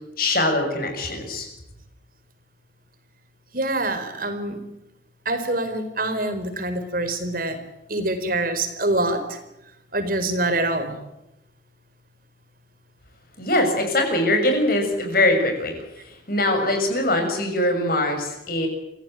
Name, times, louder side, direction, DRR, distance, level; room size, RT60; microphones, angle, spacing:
voice 1, 0.2-1.5 13.4-15.7 16.3-18.7, left 1 dB, 50° left, 4 dB, 6.8 m, -22 dB
voice 2, 3.5-4.6 5.2-7.6 7.9-9.4 9.9-10.9, right 2 dB, 50° right, 9 dB, 4.6 m, -25 dB
27.5 x 17.0 x 9.1 m, 0.89 s
head